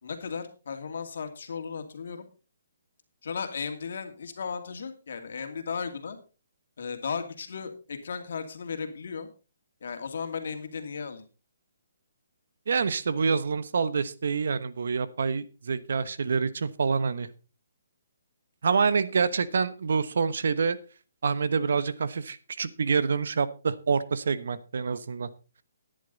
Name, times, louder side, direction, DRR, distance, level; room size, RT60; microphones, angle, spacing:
voice 1, 0.0-2.3 3.2-6.2 6.8-9.3 9.8-11.2, left 5 dB, 65° left, 7 dB, 2.4 m, -35 dB
voice 2, 12.7-17.3 18.6-20.8 21.2-25.3, right 5 dB, 70° right, 15 dB, 1.1 m, -27 dB
13.0 x 10.5 x 4.0 m, 0.33 s
hypercardioid pair, 160°, 0 cm